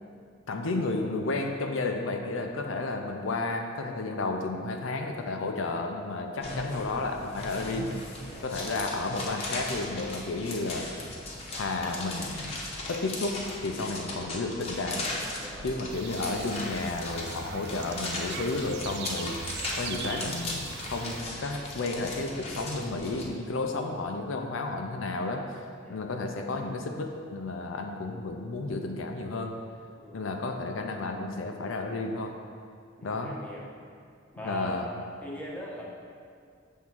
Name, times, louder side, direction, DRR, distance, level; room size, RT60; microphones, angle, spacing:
voice 1, 0.5-7.9 8.4-10.9 11.5-12.5 12.9-15.0 15.6-29.5 30.1-32.3 33.0-33.4 34.4-34.9, left 3 dB, 80° left, 3 dB, 0.6 m, -32 dB
sound 1, 6.4-23.3, left 2 dB, 30° left, 1.0 m, -37 dB
voice 2, 13.9-14.2 15.4-15.7 25.8-26.1 30.0-30.2 33.0-33.6 34.3-34.8 35.2-35.8, equal, 10° left, -5 dB, 1.1 m, -41 dB
sound 2, 15.9-21.2, right 5 dB, 60° right, 0.4 m, -41 dB
7.2 x 3.7 x 6.0 m, 2.3 s
head